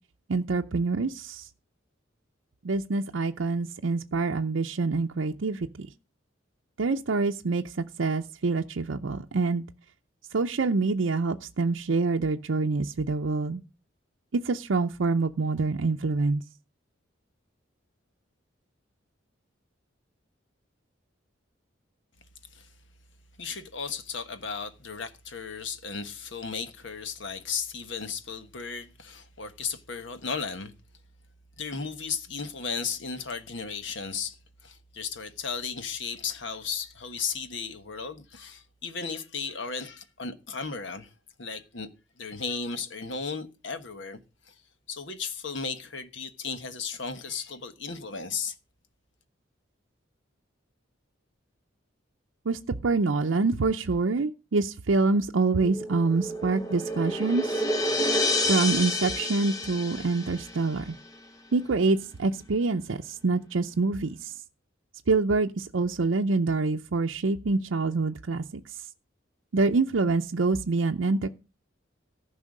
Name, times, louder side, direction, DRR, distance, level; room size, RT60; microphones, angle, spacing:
voice 1, 0.3-1.5 2.6-5.9 6.8-9.6 10.3-13.6 14.3-16.4 52.5-57.6 58.5-60.9 61.5-64.3 65.1-68.8 69.5-71.3, right 3 dB, 75° right, 0.6 m, -26 dB
voice 2, 23.4-30.7 31.6-41.1 41.4-41.9 42.2-44.5 44.9-48.5, left 5 dB, 65° left, 1.2 m, -35 dB
sound 1, 55.6-60.8, left 1 dB, 20° left, 1.1 m, -29 dB
14.5 x 5.6 x 6.5 m
head